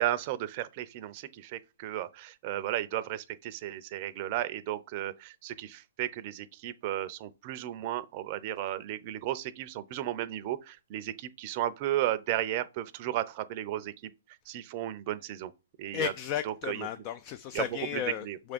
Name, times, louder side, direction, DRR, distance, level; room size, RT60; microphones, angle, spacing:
voice 1, 0.0-14.1 14.5-15.5 15.8-16.1 16.4-16.9 17.5-18.4, right 13 dB, 40° right, 0.6 m, -34 dB
voice 2, 15.9-18.5, left 10 dB, 35° left, 0.4 m, -34 dB
6.3 x 3.6 x 5.2 m
hypercardioid pair, 135°, 0 cm